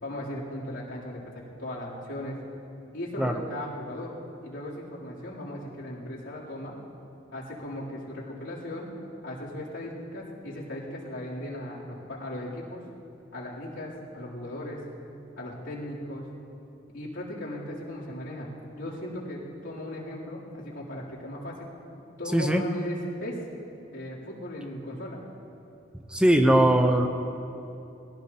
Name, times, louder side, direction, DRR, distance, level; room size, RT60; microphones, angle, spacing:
voice 1, 0.0-2.4 2.9-4.1 4.4-6.7 7.3-8.9 9.2-12.8 13.3-14.8 15.4-16.2 16.9-21.7 22.2-23.4 23.9-25.2, left 1 dB, 85° left, -7 dB, 3.3 m, -37 dB
voice 2, 22.3-22.6 26.1-27.1, right 1 dB, 5° right, 4 dB, 0.7 m, -20 dB
21.5 x 16.5 x 2.9 m, 2.8 s
head